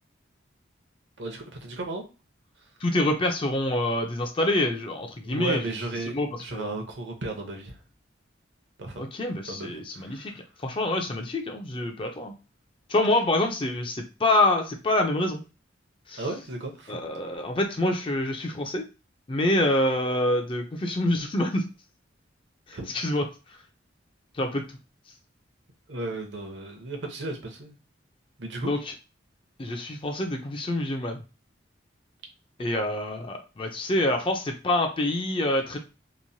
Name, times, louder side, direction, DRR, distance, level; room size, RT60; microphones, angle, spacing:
voice 1, 1.2-2.0 5.2-7.8 8.8-9.1 9.5-10.4 16.2-17.0 22.7-23.0 25.9-27.8 28.4-28.7, right 2 dB, 65° right, 3 dB, 0.7 m, -34 dB
voice 2, 2.8-5.6 6.1-6.3 6.5-6.8 9.0-10.3 10.6-12.3 12.9-15.4 16.1-16.2 16.9-18.9 19.3-21.6 22.7-23.3 24.4-24.6 28.6-28.8 29.6-31.2 32.6-35.8, left 1 dB, 25° left, 4 dB, 0.4 m, -26 dB
3.0 x 2.1 x 2.6 m, 0.31 s
head